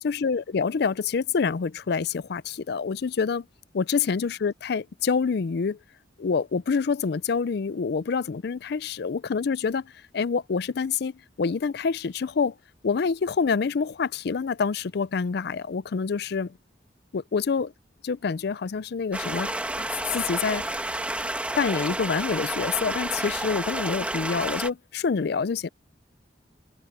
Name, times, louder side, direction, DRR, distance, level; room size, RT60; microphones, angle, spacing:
voice 1, 0.0-3.4 3.7-5.8 6.2-12.5 12.8-16.5 17.1-17.7 18.0-19.8 20.1-20.6 21.6-25.7, left 5 dB, 60° left, 0.4 m, -27 dB
Stream, 19.1-24.7, right 1 dB, 5° right, 1.6 m, -30 dB
head